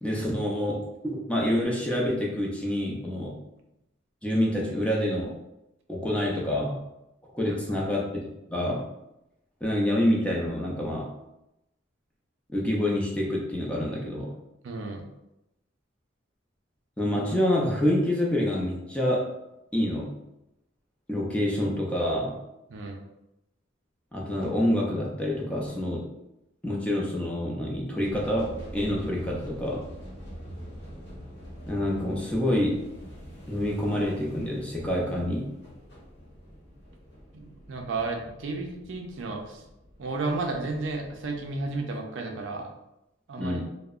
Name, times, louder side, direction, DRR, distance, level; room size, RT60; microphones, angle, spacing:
voice 1, 0.0-3.4 4.2-5.3 5.9-6.9 7.3-8.0 8.5-8.9 9.6-11.1 12.5-14.3 17.0-19.3 19.7-20.2 21.1-22.4 24.1-26.1 26.6-29.9 31.7-32.8 33.5-35.5 43.4-43.6, left 1 dB, 5° left, -3 dB, 0.4 m, -27 dB
voice 2, 7.5-7.9 14.6-15.0 22.7-23.0 37.3-39.6 40.0-42.7 43.3-43.6, right 3 dB, 80° right, 2 dB, 0.4 m, -33 dB
sound 1, 28.0-41.8, equal, 65° left, 0.9 m, -45 dB
2.7 x 2.0 x 2.4 m, 0.88 s
head